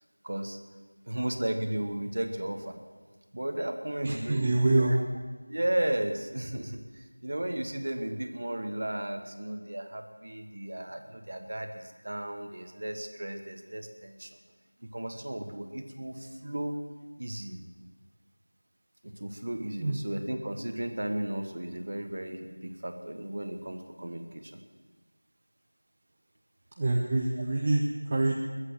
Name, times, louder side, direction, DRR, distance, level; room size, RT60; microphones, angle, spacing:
voice 1, 0.2-0.6 1.0-2.7 3.3-5.0 5.5-14.3 14.8-16.7 17.2-17.6 19.0-24.6, right 1 dB, 30° right, 6 dB, 1.1 m, -34 dB
voice 2, 4.0-5.1 19.8-20.0 26.8-28.3, right 2 dB, 15° right, 0 dB, 0.5 m, -26 dB
21.0 x 8.1 x 7.8 m, 1.3 s
figure-of-eight pair, 180°, 0 cm